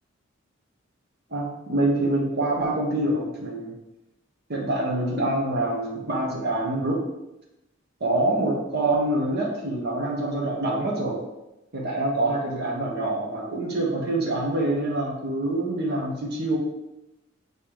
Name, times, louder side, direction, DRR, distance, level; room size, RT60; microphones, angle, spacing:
voice 1, 1.3-3.7 4.5-7.0 8.0-11.2 11.7-16.6, right 2 dB, 55° right, -3 dB, 1.3 m, -25 dB
7.0 x 4.1 x 3.6 m, 0.93 s
head